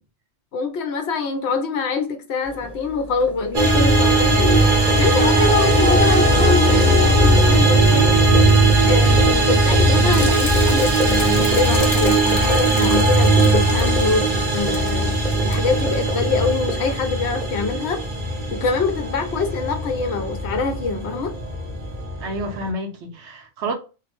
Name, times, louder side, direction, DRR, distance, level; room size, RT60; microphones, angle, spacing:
voice 1, 0.5-4.6 5.0-8.1 8.8-18.0 18.5-21.3, left 4 dB, 70° left, 0.9 m, -24 dB
sound 1, 2.4-22.0, left 1 dB, ahead, 0.6 m, -33 dB
sound 2, 3.5-22.7, right 2 dB, 50° right, 0.8 m, -18 dB
sound 3, 10.1-14.9 15.2-15.5 16.0-16.1, left 3 dB, 90° left, 1.1 m, -33 dB
voice 2, 22.2-23.7, right 1 dB, 75° right, 1.0 m, -29 dB
2.7 x 2.0 x 2.9 m
omnidirectional pair, 1.2 m